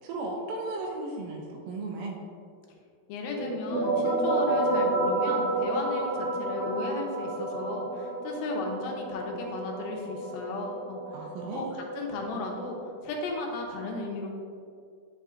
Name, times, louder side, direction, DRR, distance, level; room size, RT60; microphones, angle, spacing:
voice 1, 0.0-2.2 11.1-11.6, right 2 dB, 85° right, -1 dB, 2.4 m, -35 dB
voice 2, 3.1-11.0 11.5-12.8 13.0-14.3, left 2 dB, 85° left, 0 dB, 2.6 m, -35 dB
sound 1, 3.4-12.8, right 2 dB, 50° left, 1.4 m, -30 dB
8.8 x 5.5 x 2.4 m, 2.3 s
omnidirectional pair, 4.1 m